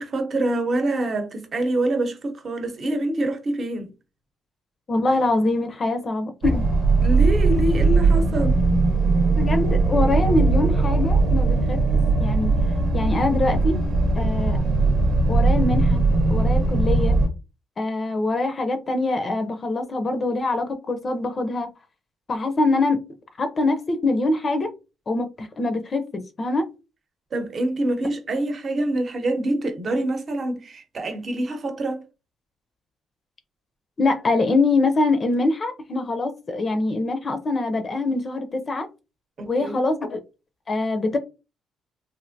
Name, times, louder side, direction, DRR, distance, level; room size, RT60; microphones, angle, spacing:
voice 1, 0.0-3.9 7.0-8.6 27.3-32.0 39.4-39.8, right 1 dB, 45° right, 0.8 m, -25 dB
voice 2, 4.9-6.7 9.4-11.8 12.2-12.5 12.9-13.8 14.2-14.6 15.3-16.0 16.3-17.2 17.8-21.7 22.3-23.0 23.4-24.7 25.1-26.7 34.0-38.9 39.5-40.2 40.7-41.2, left 2 dB, 40° left, 0.5 m, -24 dB
sound 1, 6.4-17.3, right 3 dB, 80° right, 0.9 m, -19 dB
3.2 x 2.5 x 2.6 m
cardioid pair, 90°, 0 cm